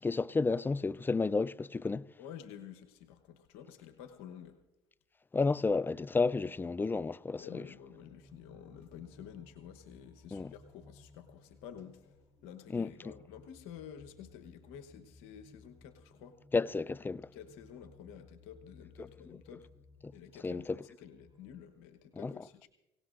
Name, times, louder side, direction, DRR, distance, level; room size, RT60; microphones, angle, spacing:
voice 1, 0.0-2.1 5.3-7.6 10.3-10.5 12.7-12.9 16.5-17.3 20.0-20.1 20.4-20.8 22.1-22.3, left 4 dB, 20° left, 0.4 m, -31 dB
voice 2, 2.2-4.6 7.4-16.4 17.3-19.7 20.1-22.7, left 9 dB, 85° left, 1.0 m, -50 dB
sound 1, 7.5-21.5, left 2 dB, 40° right, 4.1 m, -60 dB
24.5 x 17.5 x 2.5 m
supercardioid pair, 65°, 11 cm